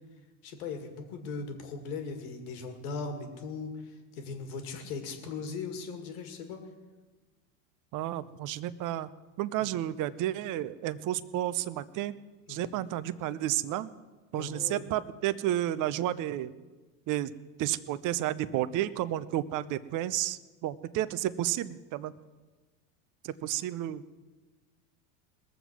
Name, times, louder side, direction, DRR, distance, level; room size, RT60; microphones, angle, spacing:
voice 1, 0.4-3.7 4.2-6.6 9.6-9.7 12.5-12.7 14.3-14.9, left 4 dB, 80° left, 5 dB, 2.2 m, -38 dB
voice 2, 7.9-9.1 9.4-12.1 12.5-13.9 14.3-16.5 17.1-17.3 17.6-22.1 23.2-24.0, right 13 dB, 45° right, 15 dB, 0.7 m, -31 dB
21.0 x 7.2 x 6.1 m, 1.2 s
supercardioid pair, 105°, 43 cm